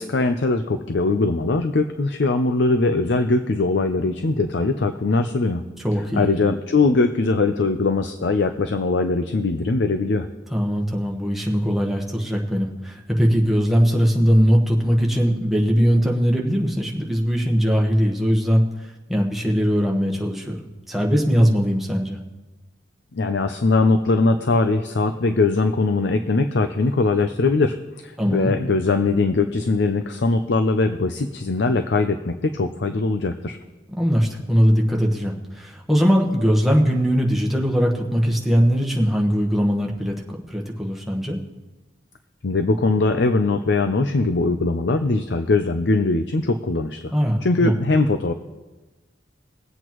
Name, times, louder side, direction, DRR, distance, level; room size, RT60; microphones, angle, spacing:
voice 1, 0.0-5.7 6.1-10.3 23.1-33.6 42.4-47.1 47.4-48.3, left 3 dB, 70° left, 7 dB, 0.6 m, -21 dB
voice 2, 5.8-6.4 10.5-22.2 28.2-28.6 34.0-41.4 47.1-47.7, equal, ahead, -1 dB, 1.2 m, -20 dB
22.0 x 8.1 x 3.1 m, 1.2 s
head